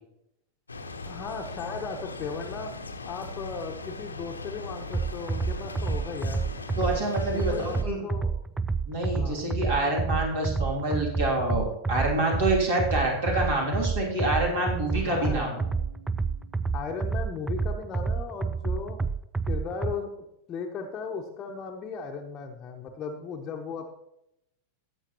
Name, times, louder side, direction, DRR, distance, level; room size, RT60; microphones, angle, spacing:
sound 1, 0.7-7.8, left 3 dB, 80° left, 1.0 m, -39 dB
voice 1, 1.0-2.8 3.0-6.4 7.3-8.4 9.1-9.4 14.9-15.6 16.7-19.0 19.5-20.1 20.5-23.9, left 5 dB, 30° left, 0 dB, 1.0 m, -36 dB
sound 2, 4.9-19.9, right 4 dB, 10° right, 0.4 m, -29 dB
voice 2, 6.8-8.0 8.9-15.5, right 1 dB, 55° right, -2 dB, 2.9 m, -27 dB
Keyboard (musical), 15.3-17.9, right 5 dB, 25° right, 4.1 m, -54 dB
17.0 x 7.4 x 3.0 m, 0.84 s
figure-of-eight pair, 90°, 0 cm